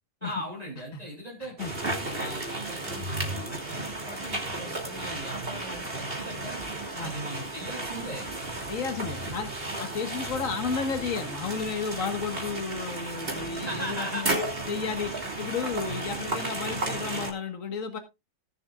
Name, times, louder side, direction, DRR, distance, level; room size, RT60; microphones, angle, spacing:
voice 1, 0.2-1.6 2.0-6.6 7.0-8.3 13.6-14.5, equal, 30° right, -3 dB, 3.4 m, -39 dB
sound 1, 1.6-17.3, right 2 dB, 45° right, 3.1 m, -34 dB
voice 2, 8.7-9.5 9.8-14.3 14.7-18.0, left 5 dB, 75° left, 7 dB, 1.9 m, -32 dB
19.5 x 7.2 x 2.4 m, 0.24 s
omnidirectional pair, 1.4 m